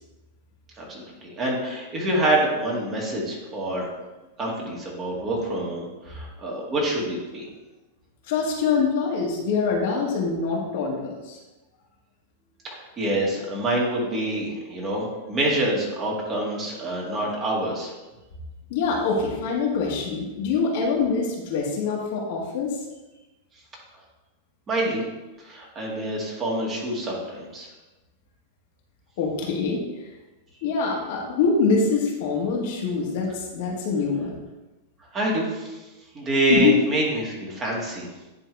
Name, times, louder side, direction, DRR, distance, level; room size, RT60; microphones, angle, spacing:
voice 1, 0.8-3.9 4.4-7.5 12.7-17.9 24.7-25.0 25.4-27.7 35.1-35.8 36.1-38.1, right 1 dB, 30° right, -3 dB, 2.2 m, -26 dB
voice 2, 8.3-11.4 18.7-22.7 29.2-30.1 30.6-34.4 36.5-36.7, left 5 dB, 65° left, -1 dB, 1.7 m, -24 dB
10.0 x 3.6 x 3.5 m, 1.1 s
hypercardioid pair, 110°, 0 cm